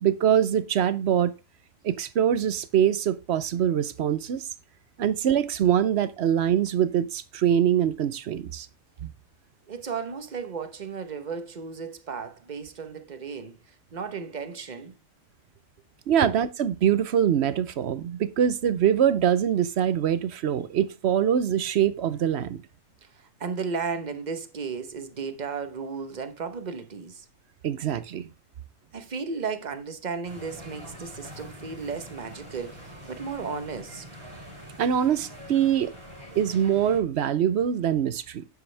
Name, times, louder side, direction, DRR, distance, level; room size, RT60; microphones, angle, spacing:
voice 1, 0.0-1.3 1.8-4.4 5.0-8.7 9.0-9.1 16.1-22.6 27.6-28.3 34.8-35.9 36.4-38.5, right 9 dB, 65° right, 0.9 m, -24 dB
voice 2, 9.7-14.9 16.2-16.3 23.0-27.3 28.9-34.0, right 5 dB, 40° right, 1.0 m, -34 dB
sound 1, 30.2-37.0, equal, 20° right, 2.8 m, -44 dB
9.6 x 7.0 x 3.3 m
omnidirectional pair, 1.3 m